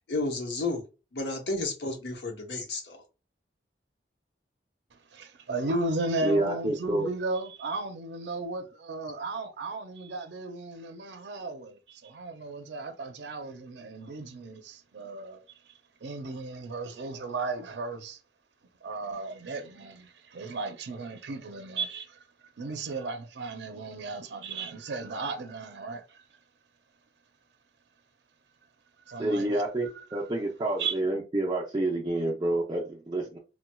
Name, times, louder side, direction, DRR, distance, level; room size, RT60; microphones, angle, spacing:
voice 1, 0.1-0.8 1.1-3.0, left 2 dB, 80° left, 1.0 m, -32 dB
voice 2, 4.9-15.7 16.0-18.2 18.8-26.2 29.1-29.7 29.9-30.3 30.8-31.0, right 3 dB, 75° right, 0.5 m, -35 dB
voice 3, 6.2-7.1 29.2-33.4, right 1 dB, 25° right, 0.5 m, -28 dB
4.3 x 2.2 x 2.2 m
head